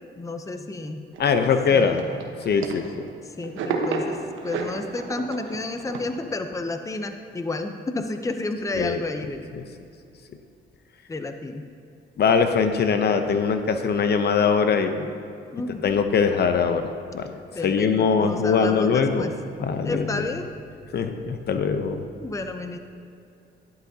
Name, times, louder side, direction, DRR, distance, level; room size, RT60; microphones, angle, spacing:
voice 1, 0.2-1.0 1.7-2.1 3.4-4.2 4.4-9.5 11.1-11.6 15.5-16.0 17.5-17.9 18.2-19.3 19.8-20.5 22.2-22.8, left 2 dB, 15° left, 7 dB, 0.7 m, -31 dB
sound 1, 1.1-3.1 3.4-6.0, right 4 dB, 75° right, 1.1 m, -31 dB
voice 2, 1.2-2.0 2.4-2.8 8.8-9.0 9.6-9.7 12.2-15.1 15.8-17.3 17.6-19.3 19.6-20.2 20.9-22.0, left 6 dB, 55° left, 7 dB, 0.7 m, -22 dB
12.0 x 11.0 x 2.8 m, 2.6 s
cardioid pair, 90°, 20 cm